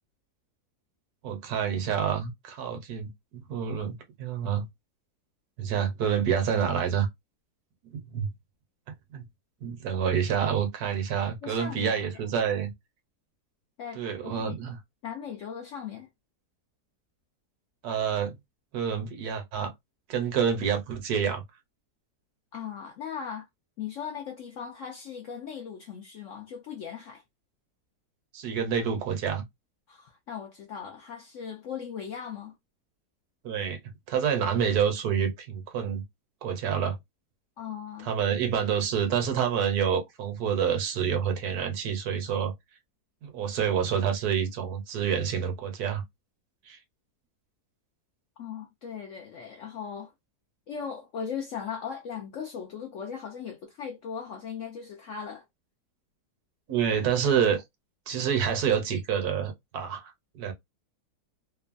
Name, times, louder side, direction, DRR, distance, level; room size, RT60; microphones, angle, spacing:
voice 1, 1.2-4.6 5.6-7.1 7.9-8.3 9.1-9.2 9.6-12.7 14.0-14.8 17.8-18.4 18.7-19.7 20.1-21.4 28.3-29.4 33.4-33.8 34.1-36.0 36.4-37.0 38.0-42.5 43.2-46.0 46.7-46.8 56.7-57.6 58.1-60.5, right 7 dB, 70° right, 1.2 m, -28 dB
voice 2, 11.4-12.2 13.8-14.6 15.0-16.1 22.5-23.5 23.8-27.2 29.9-32.5 37.6-38.1 48.4-50.1 50.7-55.4, left 7 dB, 70° left, 0.7 m, -38 dB
3.0 x 2.1 x 2.4 m
omnidirectional pair, 1.8 m